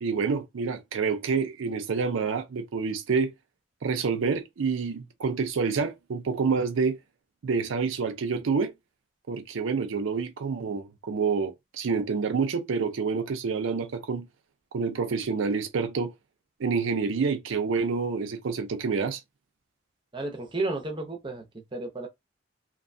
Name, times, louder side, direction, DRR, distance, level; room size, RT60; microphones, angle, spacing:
voice 1, 0.0-3.3 3.8-7.0 7.4-8.7 9.3-14.3 14.7-16.1 16.6-19.2, right 5 dB, 90° right, 0.5 m, -28 dB
voice 2, 20.1-22.1, right 2 dB, 25° right, 0.6 m, -32 dB
2.5 x 2.2 x 2.6 m
head